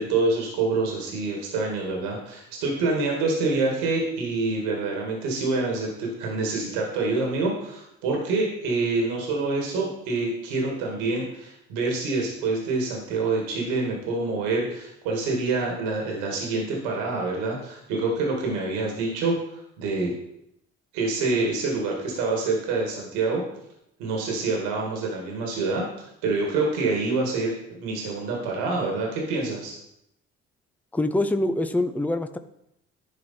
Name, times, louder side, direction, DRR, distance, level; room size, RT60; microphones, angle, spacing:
voice 1, 0.0-20.2 20.9-23.4 24.0-29.7, right 3 dB, 85° right, 0 dB, 2.0 m, -26 dB
voice 2, 30.9-32.4, left 1 dB, 5° left, 9 dB, 0.7 m, -24 dB
11.0 x 4.4 x 4.3 m, 0.79 s
hypercardioid pair, 55°, 31 cm